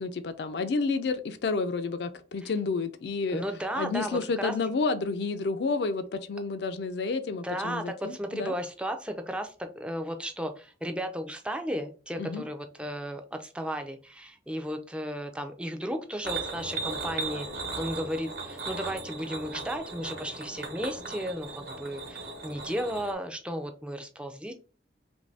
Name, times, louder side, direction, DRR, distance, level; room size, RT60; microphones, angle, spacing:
voice 1, 0.0-3.4 3.8-8.5 12.2-12.4, left 4 dB, 60° left, 0.4 m, -30 dB
voice 2, 3.3-4.5 7.4-24.5, equal, 5° right, 0.4 m, -34 dB
sound 1, 16.2-23.1, right 3 dB, 50° right, 0.9 m, -37 dB
3.0 x 2.6 x 3.3 m
head